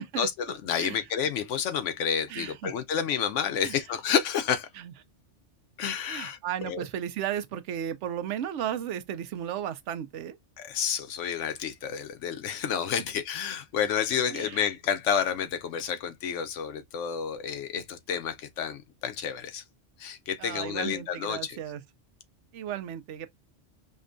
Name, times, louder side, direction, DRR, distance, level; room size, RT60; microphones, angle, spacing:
voice 1, 0.2-4.7 5.8-6.4 6.6-6.8 10.6-19.6 20.0-21.6, left 8 dB, 90° left, 1.0 m, -30 dB
voice 2, 2.3-2.7 3.6-3.8 4.8-4.9 6.1-10.4 14.3-14.6 20.4-21.8 22.5-23.3, right 10 dB, 80° right, 0.9 m, -34 dB
5.2 x 2.1 x 2.5 m
omnidirectional pair, 1.2 m